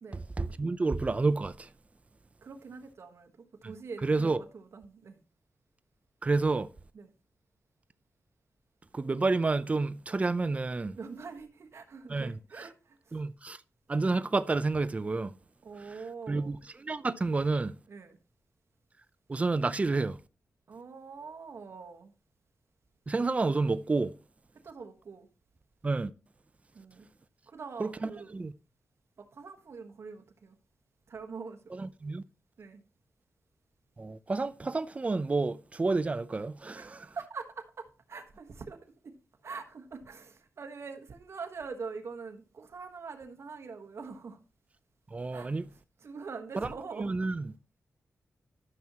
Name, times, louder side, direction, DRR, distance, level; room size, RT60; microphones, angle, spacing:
voice 1, 0.1-1.7 3.6-3.7 4.0-4.4 6.2-6.7 8.9-11.0 12.1-12.6 13.1-13.6 13.9-15.3 16.3-17.7 19.3-20.2 23.1-24.1 25.8-26.1 27.8-28.5 31.7-32.2 34.0-37.1 45.1-45.7 46.6-46.7 47.0-47.5, right 3 dB, 25° right, 0.4 m, -30 dB
voice 2, 2.4-5.2 6.9-7.1 10.9-13.2 15.6-16.6 17.9-18.2 20.7-22.1 24.6-25.3 26.7-27.1 27.4-28.3 29.2-30.6 31.1-31.9 32.6-32.8 36.7-39.2 39.4-44.4 45.3-45.5 46.0-47.1, right 5 dB, 60° right, 1.3 m, -44 dB
13.0 x 6.0 x 2.9 m
wide cardioid pair, 105°, 5 cm